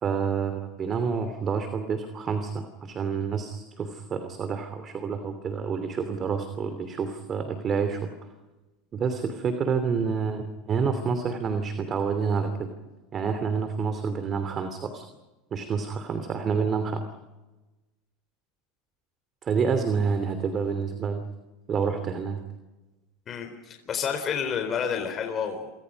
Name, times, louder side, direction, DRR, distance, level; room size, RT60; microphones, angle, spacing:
voice 1, 0.0-8.0 8.9-12.7 13.1-15.0 15.5-17.0 19.4-21.2 21.7-22.4, right 5 dB, 35° right, 8 dB, 2.9 m, -28 dB
voice 2, 23.3-25.7, left 7 dB, 35° left, 4 dB, 4.1 m, -30 dB
30.0 x 25.0 x 5.3 m, 1.1 s
hypercardioid pair, 100°, 0 cm